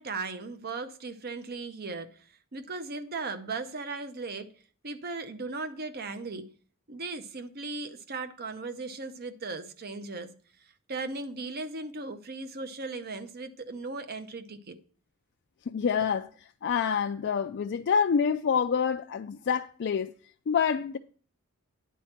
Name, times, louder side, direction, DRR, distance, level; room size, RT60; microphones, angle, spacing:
voice 1, 0.0-4.5 4.8-6.5 6.9-10.3 10.6-14.8, right 3 dB, 45° right, 0.7 m, -37 dB
voice 2, 15.7-16.3 16.6-20.1 20.5-21.0, left 6 dB, 50° left, 0.4 m, -27 dB
10.0 x 4.3 x 5.9 m
head